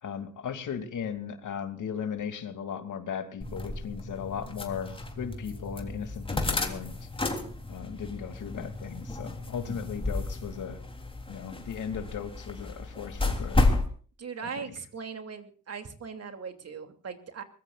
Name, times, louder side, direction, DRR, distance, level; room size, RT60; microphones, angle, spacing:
voice 1, 0.0-7.1 7.7-10.8 11.3-13.6 14.6-14.7, left 7 dB, 80° left, 8 dB, 2.8 m, -37 dB
sound 1, 3.4-13.9, left 2 dB, 15° left, 3.5 m, -32 dB
voice 2, 14.2-17.4, right 6 dB, 55° right, 7 dB, 2.9 m, -39 dB
23.5 x 21.0 x 2.5 m, 0.42 s
wide cardioid pair, 130°, 30 cm